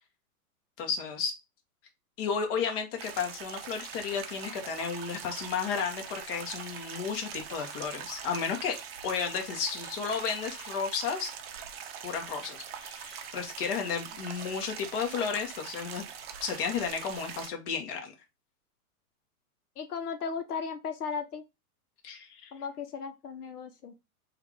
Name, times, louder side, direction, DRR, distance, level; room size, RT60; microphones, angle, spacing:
voice 1, 0.8-1.4 2.2-8.8 9.0-11.3 12.0-16.0 16.4-18.1 22.0-22.5, left 6 dB, 35° left, 1.0 m, -33 dB
sound 1, 3.0-17.5, right 7 dB, 45° right, 0.6 m, -42 dB
voice 2, 19.8-21.4 22.5-24.0, left 5 dB, 80° left, 0.8 m, -36 dB
3.3 x 2.4 x 3.1 m
hypercardioid pair, 130°, 45 cm